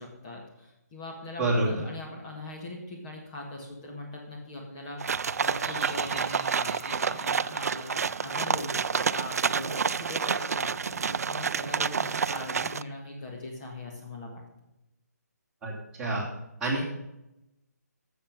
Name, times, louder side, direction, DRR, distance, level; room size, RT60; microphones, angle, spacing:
voice 1, 0.0-14.4, left 2 dB, 25° left, -1 dB, 1.9 m, -41 dB
voice 2, 1.4-1.8 15.6-16.3 16.6-16.8, right 2 dB, 10° right, -6 dB, 2.7 m, -27 dB
sound 1, 5.0-12.8, right 6 dB, 60° right, 0.4 m, -29 dB
Laughter, 5.1-10.7, right 4 dB, 40° right, 2.4 m, -44 dB
13.0 x 7.1 x 5.4 m, 0.91 s
hypercardioid pair, 155°, 9 cm